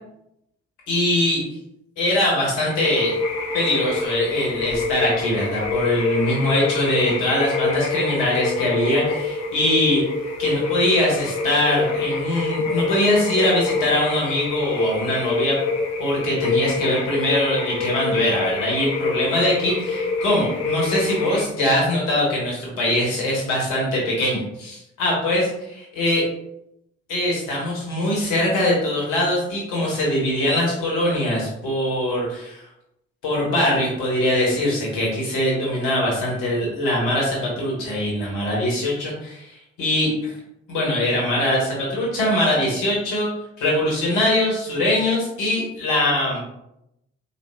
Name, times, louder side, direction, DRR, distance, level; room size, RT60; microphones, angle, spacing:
voice 1, 0.9-1.4 2.0-3.1 3.5-10.0 10.4-15.6 16.0-26.2 27.1-32.6 33.2-40.3 40.7-43.3 43.6-46.4, left 1 dB, 70° left, -4 dB, 1.2 m, -22 dB
sound 1, 2.6-21.4, left 3 dB, 50° left, 0.8 m, -26 dB
3.3 x 2.3 x 3.3 m, 0.82 s
figure-of-eight pair, 40°, 33 cm